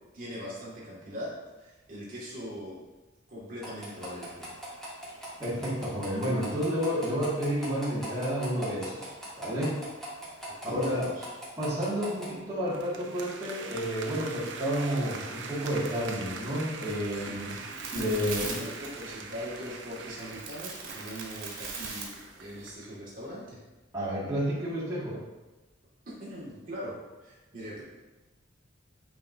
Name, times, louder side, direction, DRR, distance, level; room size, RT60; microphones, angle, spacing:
voice 1, 0.1-2.8 3.3-4.6 10.6-11.3 17.1-17.8 18.2-23.6 26.2-27.8, equal, 45° right, -7 dB, 2.0 m, -41 dB
sound 1, 3.6-12.3, equal, 5° left, 1.9 m, -42 dB
voice 2, 5.4-9.1 9.4-9.8 10.6-11.0 11.6-17.6 17.9-18.6 23.9-25.2, equal, 15° right, -10 dB, 2.0 m, -30 dB
sound 2, 12.7-23.0, right 4 dB, 65° right, 0.7 m, -43 dB
sound 3, 16.8-22.7, right 4 dB, 85° right, 1.4 m, -41 dB
9.2 x 4.7 x 2.7 m, 1.1 s
head